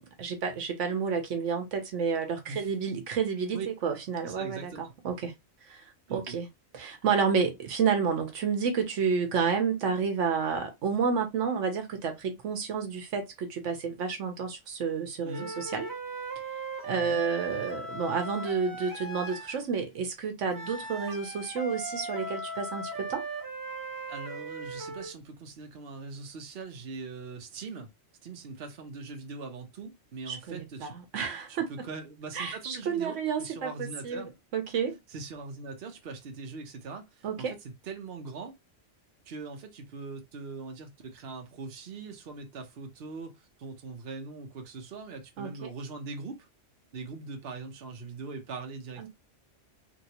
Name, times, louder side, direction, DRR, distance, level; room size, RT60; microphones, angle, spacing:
voice 1, 0.2-5.3 5.6-5.8 6.1-6.5 6.7-15.9 16.8-23.2 30.3-31.7 32.3-35.0 37.2-37.5 45.4-45.7 49.0-49.1, right 6 dB, 80° right, 1.1 m, -30 dB
voice 2, 4.2-4.9 6.1-6.4 15.2-15.5 16.9-17.2 24.1-27.9 28.2-30.9 31.5-34.3 35.1-38.6 39.2-46.5 46.9-49.1, right 4 dB, 55° right, 1.0 m, -41 dB
sound 1, 15.3-19.6 20.5-25.1, right 2 dB, 20° right, 0.6 m, -38 dB
3.1 x 2.8 x 2.8 m
omnidirectional pair, 1.3 m